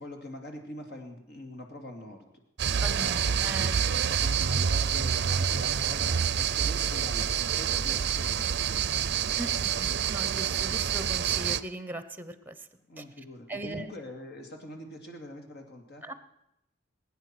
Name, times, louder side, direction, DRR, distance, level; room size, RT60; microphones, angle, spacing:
voice 1, 0.0-9.2 12.9-16.1, left 1 dB, 60° left, 4 dB, 2.6 m, -44 dB
sound 1, 2.6-11.6, right 8 dB, 60° right, 0.5 m, -27 dB
voice 2, 2.8-3.8 9.4-12.6 13.0-13.1 13.5-13.9 16.0-16.1, right 2 dB, 10° right, 12 dB, 0.9 m, -39 dB
20.5 x 9.8 x 6.1 m, 0.83 s
head